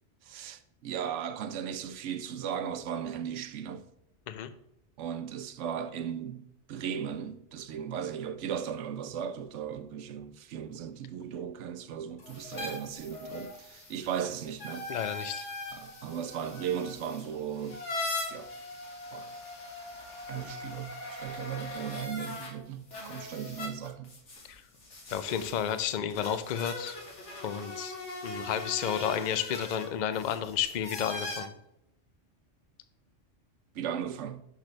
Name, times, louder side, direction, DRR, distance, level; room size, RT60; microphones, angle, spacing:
voice 1, 0.2-3.8 5.0-14.9 15.7-17.8 18.3-18.5 19.1-19.3 20.3-24.1 33.7-34.4, right 8 dB, 85° right, 0.9 m, -37 dB
sound 1, 12.2-22.5 22.9-31.4, left 2 dB, 80° left, 1.9 m, -41 dB
voice 2, 14.9-15.5 24.5-24.6 25.1-26.9 27.4-28.0 28.2-31.5, left 9 dB, 55° left, 0.5 m, -32 dB
6.3 x 6.1 x 3.2 m
omnidirectional pair, 1.2 m